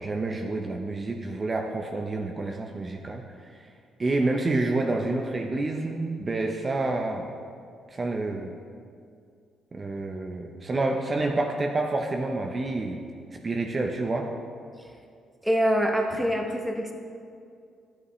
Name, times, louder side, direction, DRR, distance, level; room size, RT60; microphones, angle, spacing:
voice 1, 0.0-3.2 4.0-7.3 7.9-8.5 9.7-13.0 13.4-14.3, right 2 dB, 30° right, 2 dB, 0.7 m, -28 dB
voice 2, 15.4-16.9, equal, 5° right, 2 dB, 1.0 m, -25 dB
12.0 x 8.2 x 3.2 m, 2.3 s
cardioid pair, 90°, 0 cm